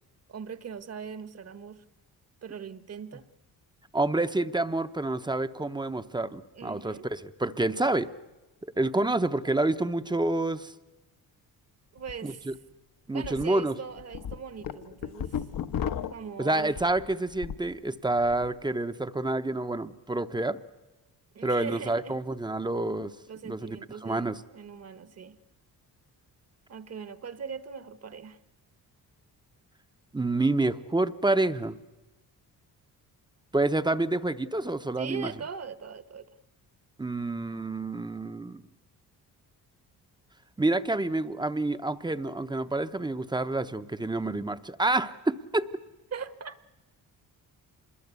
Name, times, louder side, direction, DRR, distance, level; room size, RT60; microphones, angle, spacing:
voice 1, 0.3-1.8 2.4-3.3 6.5-7.1 11.9-12.5 13.1-15.4 16.1-16.7 21.3-22.2 23.3-25.4 26.7-28.4 35.0-36.3 46.1-46.6, right 6 dB, 40° right, 14 dB, 1.2 m, -40 dB
voice 2, 3.9-8.1 8.8-10.7 12.2-12.5 13.1-13.8 16.4-20.6 21.4-23.1 23.4-24.4 30.1-31.8 33.5-35.3 37.0-38.6 40.6-45.7, right 2 dB, 10° right, 12 dB, 0.7 m, -28 dB
sound 1, 12.0-12.1 12.5-12.6 13.2-13.4 13.9-17.7 18.0-18.5, left 8 dB, 65° left, 1.0 m, -35 dB
26.5 x 21.0 x 8.2 m, 1.1 s
cardioid pair, 120°, 37 cm